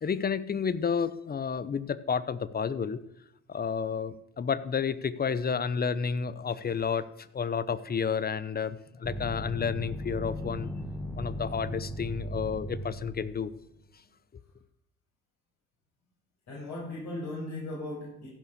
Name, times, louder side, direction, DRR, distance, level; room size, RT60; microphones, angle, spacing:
voice 1, 0.0-3.0 3.5-10.7 11.2-13.5, left 6 dB, 30° left, 16 dB, 0.9 m, -31 dB
sound 1, 9.0-13.6, equal, ahead, 1.4 m, -37 dB
voice 2, 16.5-18.3, left 1 dB, 55° left, -6 dB, 6.0 m, -37 dB
15.5 x 5.6 x 7.0 m, 0.77 s
supercardioid pair, 70°, 32 cm